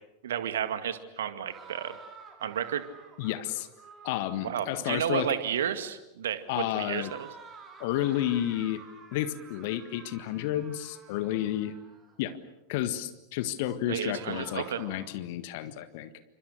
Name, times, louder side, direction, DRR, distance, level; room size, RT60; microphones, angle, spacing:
voice 1, 0.2-2.0 2.4-2.8 4.4-7.3 13.9-14.8, right 9 dB, 60° right, 11 dB, 2.1 m, -32 dB
sound 1, 1.4-4.8 6.9-12.2 14.1-15.2, right 5 dB, 20° right, 5.5 m, -50 dB
voice 2, 3.2-3.7 4.0-5.3 6.5-7.1 7.8-8.8 9.1-11.8 12.2-12.4 12.7-16.2, left 12 dB, 50° left, 12 dB, 1.7 m, -31 dB
29.0 x 26.0 x 6.7 m, 0.97 s
figure-of-eight pair, 90°, 0 cm